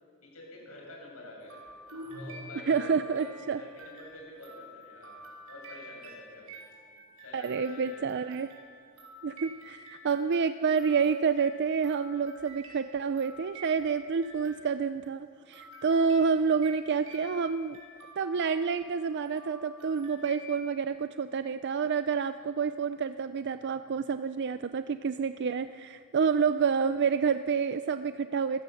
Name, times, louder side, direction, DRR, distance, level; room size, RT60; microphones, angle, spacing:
voice 1, 0.2-1.7 2.1-6.6 7.2-8.1 14.4-14.5 22.4-22.6, left 1 dB, 85° left, -2 dB, 7.5 m, -48 dB
sound 1, 1.5-15.1 15.5-20.6, equal, 90° right, 5.4 m, -49 dB
voice 2, 2.7-3.6 7.3-8.5 9.2-17.8 18.2-28.6, right 5 dB, 55° right, 11 dB, 0.4 m, -28 dB
26.0 x 16.0 x 7.1 m, 2.3 s
head